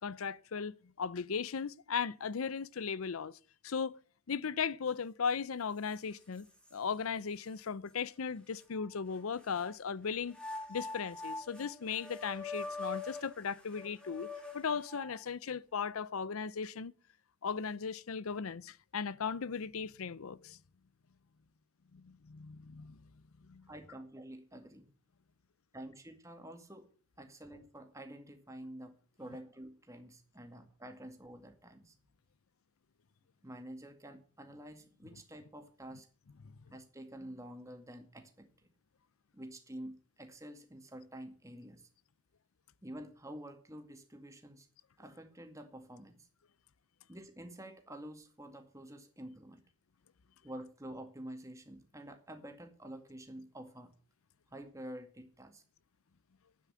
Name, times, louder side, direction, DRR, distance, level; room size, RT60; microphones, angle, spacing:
voice 1, 0.0-3.4 3.6-4.0 4.3-6.5 6.7-10.4 10.7-14.3 14.5-16.9 17.4-20.6 21.9-23.0 23.5-23.6 36.4-36.5, left 6 dB, 80° left, 0.6 m, -37 dB
sound 1, 5.3-5.4 5.8-6.8 7.4-7.5 8.6-9.7 10.3-15.2, left 3 dB, 5° left, 2.6 m, -44 dB
voice 2, 23.7-24.9 25.7-26.9 27.2-32.1 33.4-36.1 36.7-38.7 39.3-41.9 42.8-44.7 45.0-46.3 47.1-49.6 50.4-53.9 54.5-55.6, right 1 dB, 15° right, 2.1 m, -49 dB
12.0 x 9.2 x 7.5 m
head